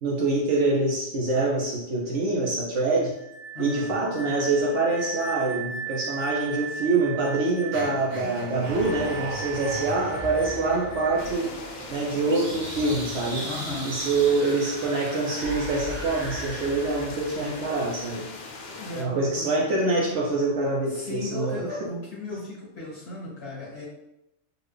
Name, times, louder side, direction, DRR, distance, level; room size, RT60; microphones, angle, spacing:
voice 1, 0.0-3.2 3.6-11.5 11.9-13.5 13.8-18.3 18.9-21.7 22.3-22.5, right 3 dB, 70° right, -3 dB, 0.9 m, -25 dB
sound 1, 3.1-11.4, right 5 dB, 20° left, 1.5 m, -37 dB
voice 2, 3.5-4.0 13.4-14.0 18.7-19.6 20.9-23.9, left 2 dB, 55° left, -8 dB, 1.7 m, -35 dB
sound 2, 7.7-17.9, right 1 dB, 85° right, 1.3 m, -37 dB
sound 3, 11.2-19.0, left 3 dB, 85° left, 0.4 m, -41 dB
3.8 x 2.4 x 3.2 m, 0.88 s
omnidirectional pair, 1.3 m